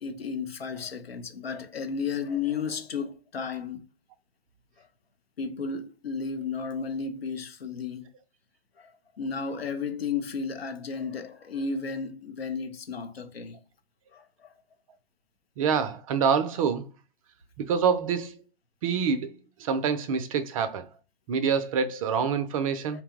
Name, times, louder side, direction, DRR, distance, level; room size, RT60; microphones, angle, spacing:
voice 1, 0.0-3.8 4.8-4.9 5.4-8.1 8.8-8.9 9.2-13.6 14.1-14.5 22.9-23.0, left 5 dB, 85° left, 0.6 m, -33 dB
voice 2, 15.6-16.8 17.6-18.3 18.8-19.3 19.6-20.9 21.3-23.0, right 6 dB, 35° right, 0.4 m, -26 dB
2.8 x 2.0 x 3.4 m
figure-of-eight pair, 115°, 29 cm